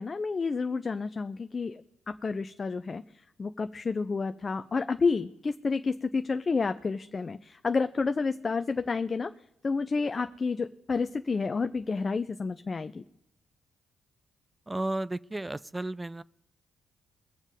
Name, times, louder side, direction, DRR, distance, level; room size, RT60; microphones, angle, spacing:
voice 1, 0.0-3.0 3.4-9.3 9.6-13.0, left 4 dB, 40° left, 0.5 m, -30 dB
voice 2, 14.7-16.2, right 2 dB, 20° right, 0.4 m, -33 dB
21.5 x 7.2 x 5.1 m
hypercardioid pair, 45°, 0 cm